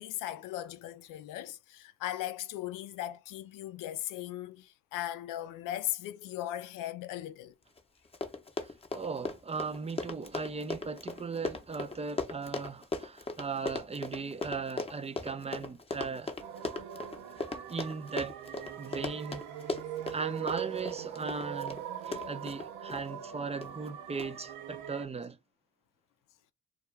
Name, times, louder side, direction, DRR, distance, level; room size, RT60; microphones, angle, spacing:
voice 1, 0.0-7.6, left 13 dB, 75° left, 0.5 m, -38 dB
Run, 7.8-7.9 8.1-23.0 23.6-23.9 24.2-24.3, left 3 dB, 20° left, 0.7 m, -38 dB
voice 2, 8.6-16.4 17.7-18.4 18.8-19.4 20.1-25.4, right 4 dB, 20° right, 0.4 m, -38 dB
sound 1, 16.4-25.0, right 9 dB, 75° right, 0.6 m, -41 dB
2.3 x 2.3 x 3.2 m
supercardioid pair, 55°, 32 cm